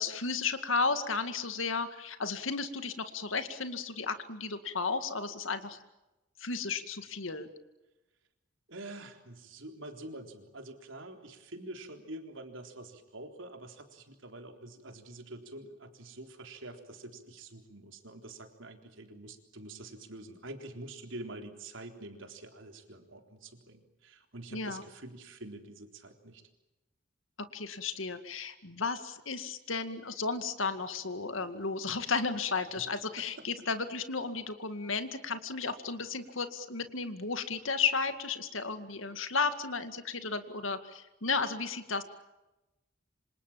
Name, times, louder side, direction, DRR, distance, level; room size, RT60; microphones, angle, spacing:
voice 1, 0.0-5.8 6.4-7.5 24.5-24.8 27.5-42.0, left 4 dB, 90° left, 9 dB, 2.2 m, -33 dB
voice 2, 8.7-26.4 32.8-32.9 33.2-33.5, right 2 dB, 80° right, 5 dB, 4.0 m, -46 dB
27.5 x 26.5 x 7.5 m, 0.99 s
head